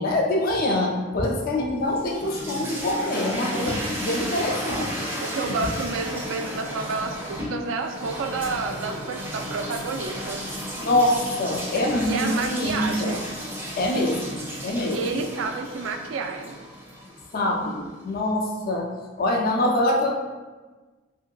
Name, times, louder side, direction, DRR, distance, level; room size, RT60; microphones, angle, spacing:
voice 1, 0.0-5.1 5.5-5.6 10.8-13.2 13.8-15.2 17.3-18.9 19.2-20.2, left 1 dB, 50° left, -1 dB, 0.4 m, -25 dB
sound 1, 1.8-17.8, equal, 10° right, 0.5 m, -34 dB
voice 2, 5.2-10.4 12.0-13.3 14.9-16.6, right 4 dB, 70° right, 5 dB, 0.3 m, -30 dB
2.8 x 2.6 x 2.3 m, 1.3 s
head